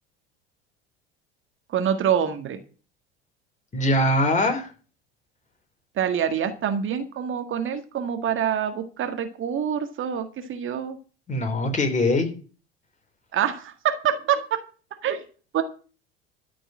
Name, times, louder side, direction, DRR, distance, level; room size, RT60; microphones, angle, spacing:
voice 1, 1.7-2.6 6.0-11.0 13.3-14.6 15.0-15.2 15.5-15.6, right 8 dB, 40° right, 7 dB, 1.9 m, -26 dB
voice 2, 3.7-4.7 11.3-12.3, left 1 dB, 25° left, 5 dB, 3.8 m, -22 dB
13.5 x 5.3 x 8.8 m, 0.38 s
hypercardioid pair, 75°, 30 cm